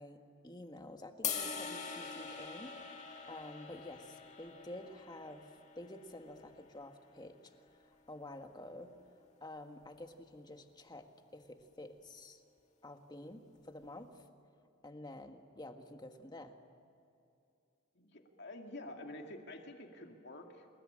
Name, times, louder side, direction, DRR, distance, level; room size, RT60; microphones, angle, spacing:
voice 1, 0.0-5.5 5.7-8.9 9.4-12.4 12.8-14.2 14.8-16.5, left 1 dB, 20° left, 6 dB, 1.6 m, -50 dB
sound 1, 1.2-7.5, left 6 dB, 35° left, 2.1 m, -44 dB
voice 2, 17.9-20.7, left 1 dB, 55° left, 3 dB, 2.4 m, -48 dB
28.0 x 20.5 x 10.0 m, 2.6 s
head